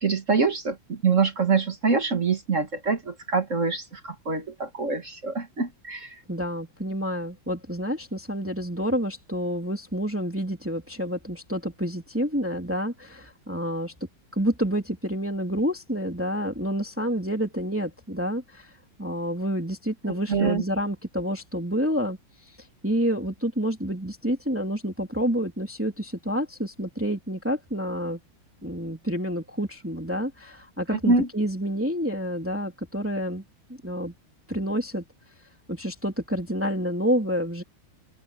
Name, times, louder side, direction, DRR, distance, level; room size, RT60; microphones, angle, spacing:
voice 1, 0.0-6.2 20.3-20.6 30.9-31.3, right 4 dB, 40° right, 1.9 m, -25 dB
voice 2, 6.3-13.9 14.3-18.7 19.0-22.2 22.8-28.2 28.6-33.4 33.8-34.1 34.5-35.0 35.7-37.6, equal, 5° right, 2.8 m, -28 dB
open air
omnidirectional pair, 2.4 m